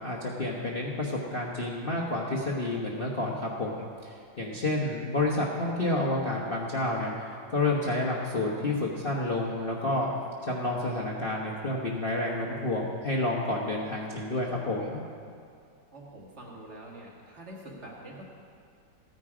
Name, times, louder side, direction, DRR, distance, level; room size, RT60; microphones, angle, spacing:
voice 1, 0.0-7.1 7.5-10.1 10.5-15.0, left 2 dB, 35° left, -3 dB, 0.9 m, -29 dB
voice 2, 15.9-18.2, right 1 dB, 35° right, -3 dB, 2.2 m, -45 dB
15.5 x 9.3 x 4.9 m, 2.3 s
omnidirectional pair, 2.3 m